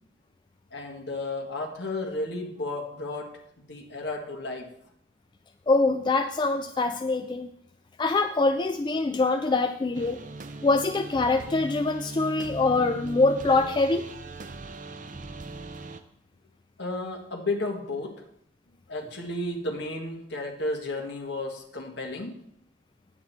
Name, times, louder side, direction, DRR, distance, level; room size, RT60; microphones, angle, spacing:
voice 1, 0.7-3.3 3.6-4.7 16.8-18.2 18.9-22.4, left 2 dB, 60° left, 1 dB, 1.7 m, -33 dB
voice 2, 5.7-7.5 8.0-10.2 10.6-14.1, left 3 dB, 25° left, 7 dB, 0.3 m, -24 dB
sound 1, 9.9-16.0, right 2 dB, 40° right, 0.6 m, -39 dB
9.5 x 8.6 x 4.3 m, 0.72 s
head